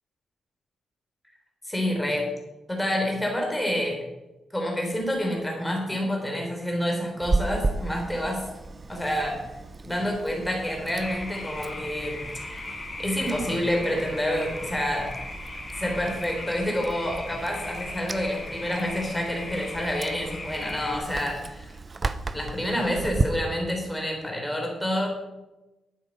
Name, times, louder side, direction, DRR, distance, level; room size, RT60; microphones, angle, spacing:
voice 1, 1.7-2.3 2.7-4.0 4.5-8.5 8.9-9.4 9.8-12.2 13.0-15.1 15.8-21.7 22.3-25.1, equal, 5° left, 0 dB, 3.6 m, -28 dB
Chewing mastication, 7.2-23.2, right 3 dB, 30° right, 0.7 m, -34 dB
sound 1, 11.0-21.0, left 2 dB, 30° left, 2.8 m, -37 dB
11.5 x 8.8 x 5.4 m, 1.0 s
cardioid pair, 125°, 0 cm